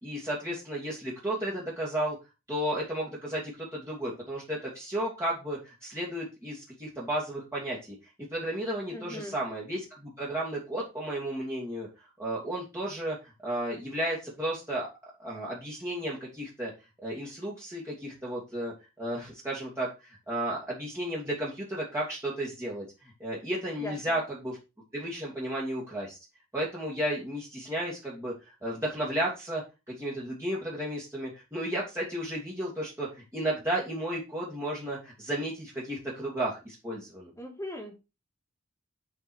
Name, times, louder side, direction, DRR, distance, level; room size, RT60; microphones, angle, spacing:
voice 1, 0.0-2.2 2.5-7.9 8.3-11.9 12.2-13.2 13.4-16.7 17.0-24.6 24.9-26.2 26.5-37.3, right 1 dB, 10° right, -6 dB, 2.5 m, -33 dB
voice 2, 8.9-9.4 23.8-24.2 37.4-37.9, left 1 dB, 15° left, 2 dB, 2.4 m, -39 dB
9.1 x 5.5 x 4.6 m, 0.27 s
head